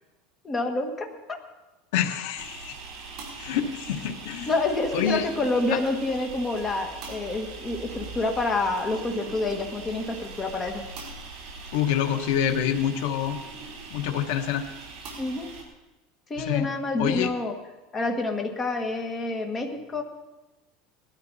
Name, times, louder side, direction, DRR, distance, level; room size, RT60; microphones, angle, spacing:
voice 1, 0.4-1.4 4.5-10.9 15.2-15.6 16.3-17.6 17.9-20.0, left 2 dB, 20° left, 4 dB, 1.6 m, -28 dB
voice 2, 1.9-2.8 3.4-4.5 4.9-5.3 5.7-5.8 11.7-13.4 13.9-14.6 16.4-16.7 17.0-17.3, left 9 dB, 75° left, 5 dB, 1.2 m, -26 dB
sound 1, 2.3-15.6, right 4 dB, 35° right, 4.8 m, -41 dB
19.0 x 13.0 x 4.1 m, 1.1 s
supercardioid pair, 155°, 0 cm